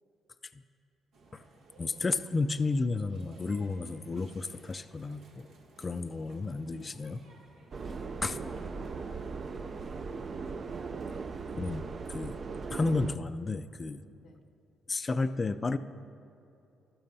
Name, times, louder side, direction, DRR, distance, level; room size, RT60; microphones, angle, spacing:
sound 1, 1.1-10.8, right 2 dB, 80° right, 1.2 m, -58 dB
voice 1, 1.8-5.5 5.8-7.2 8.2-8.4 11.5-12.4 12.7-14.0 14.9-15.8, left 3 dB, 30° left, 12 dB, 0.3 m, -32 dB
voice 2, 5.8-7.0 7.9-10.4 14.2-14.4, left 4 dB, 70° left, 4 dB, 0.6 m, -57 dB
Subway metro underground, 7.7-13.2, right 4 dB, 45° right, 0.4 m, -38 dB
14.5 x 12.0 x 2.7 m, 2.7 s
cardioid pair, 90°, 0 cm